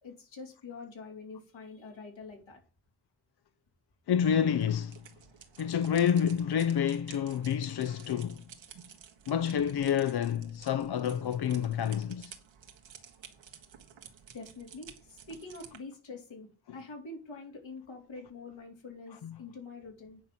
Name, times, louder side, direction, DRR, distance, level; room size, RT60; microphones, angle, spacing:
voice 1, 0.0-2.6 14.3-20.2, left 3 dB, 80° left, 3.4 m, -46 dB
voice 2, 4.1-5.0 5.6-8.4 9.3-12.3 19.2-19.3, left 8 dB, 60° left, 0.7 m, -28 dB
sound 1, 4.5-15.8, right 8 dB, 85° right, 1.5 m, -53 dB
9.2 x 5.5 x 6.0 m
supercardioid pair, 40°, 44 cm